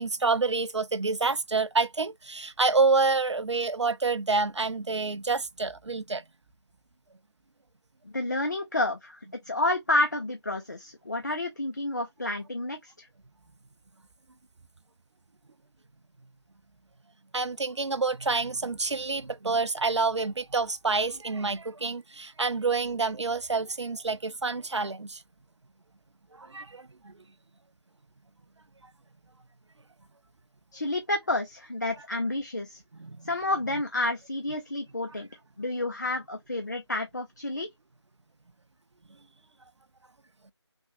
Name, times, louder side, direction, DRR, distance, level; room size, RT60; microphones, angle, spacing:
voice 1, 0.0-6.2 17.3-25.2 26.4-27.1 33.0-33.3, right 4 dB, 90° right, 0.4 m, -28 dB
voice 2, 8.0-13.1 30.7-32.8 33.2-35.3 35.6-37.7, left 2 dB, 40° left, 0.4 m, -30 dB
3.4 x 2.1 x 2.4 m
figure-of-eight pair, 165°, 14 cm